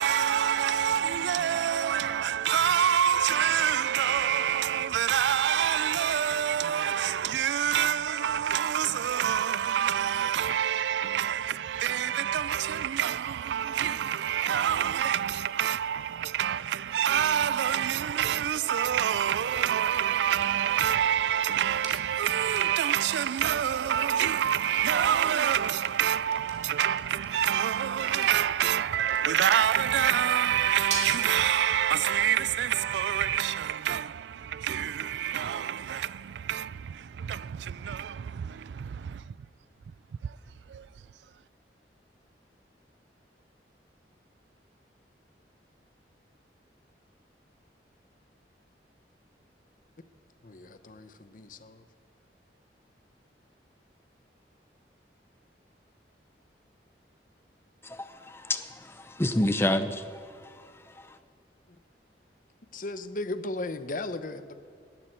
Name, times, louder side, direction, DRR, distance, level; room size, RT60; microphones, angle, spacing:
voice 1, 0.0-39.3 40.2-40.4 40.7-40.9, right 9 dB, 80° right, 0.3 m, -27 dB
sound 1, 19.5-37.3, right 3 dB, 40° right, 2.3 m, -46 dB
voice 2, 50.4-51.8 62.7-64.6, left 2 dB, 50° left, 0.8 m, -36 dB
voice 3, 57.8-60.0, left 1 dB, 15° left, 0.7 m, -28 dB
19.0 x 14.0 x 4.5 m
head